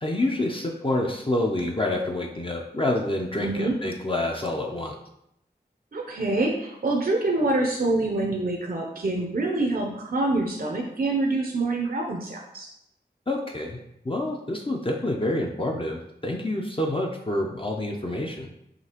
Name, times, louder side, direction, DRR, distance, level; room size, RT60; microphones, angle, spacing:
voice 1, 0.0-4.9 13.3-13.8 14.0-18.5, left 1 dB, 30° left, 1 dB, 0.5 m, -27 dB
voice 2, 3.4-3.7 5.9-12.7, right 2 dB, 60° right, 0 dB, 0.6 m, -26 dB
5.0 x 2.8 x 2.8 m, 0.79 s
wide cardioid pair, 55°, 18 cm